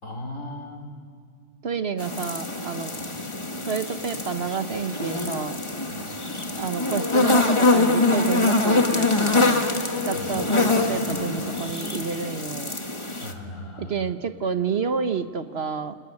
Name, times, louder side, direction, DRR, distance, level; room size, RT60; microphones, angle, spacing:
voice 1, 0.0-1.1 2.9-3.3 5.9-6.1 10.1-10.3 13.2-14.0, left 1 dB, 80° left, 3 dB, 4.9 m, -38 dB
voice 2, 1.6-2.9 3.6-5.6 6.2-9.7 10.0-12.8 13.8-16.0, right 6 dB, 55° right, 10 dB, 1.2 m, -29 dB
sound 1, 2.0-13.3, left 2 dB, 25° left, 1.7 m, -24 dB
28.5 x 21.5 x 9.9 m, 2.1 s
omnidirectional pair, 1.3 m